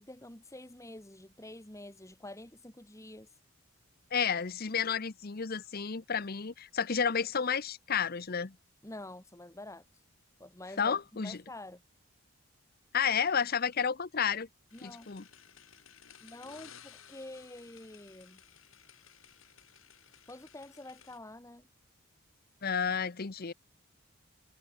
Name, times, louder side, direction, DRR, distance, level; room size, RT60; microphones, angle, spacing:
voice 1, 0.0-3.3 8.8-10.0 10.4-11.8 14.7-15.1 16.2-18.4 20.3-21.6, left 1 dB, 15° left, 1.8 m, -48 dB
voice 2, 4.1-8.6 10.8-11.4 12.9-14.5 14.8-15.3 22.6-23.5, left 6 dB, 45° left, 0.8 m, -31 dB
sound 1, 14.7-21.2, left 8 dB, 70° left, 5.8 m, -57 dB
head